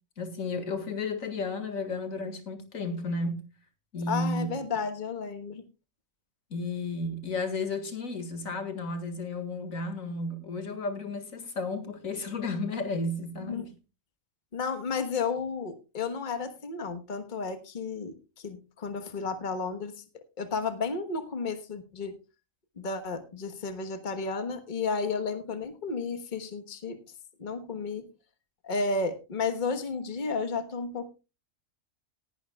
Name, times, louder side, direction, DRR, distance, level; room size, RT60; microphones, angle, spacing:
voice 1, 0.2-3.5 3.9-4.5 6.5-13.7, left 2 dB, 90° left, 2.3 m, -33 dB
voice 2, 4.1-5.6 13.4-13.7 14.5-20.0 20.4-22.1 22.8-27.0 27.4-28.1 28.6-31.1, left 4 dB, 35° left, 1.3 m, -32 dB
18.5 x 11.5 x 2.3 m
omnidirectional pair, 1.4 m